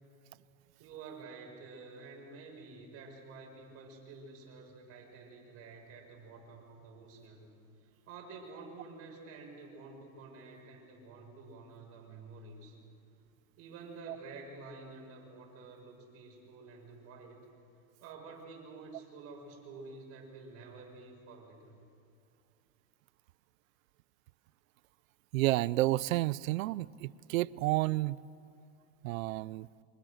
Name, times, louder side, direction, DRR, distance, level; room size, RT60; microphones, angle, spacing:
voice 1, 0.8-7.5 7.8-12.8 13.6-17.4 18.0-21.8, right 3 dB, 35° right, 1 dB, 6.1 m, -50 dB
voice 2, 25.3-28.2 29.0-29.7, right 18 dB, 75° right, 20 dB, 0.7 m, -30 dB
29.0 x 26.0 x 6.5 m, 2.5 s
supercardioid pair, 160°, 41 cm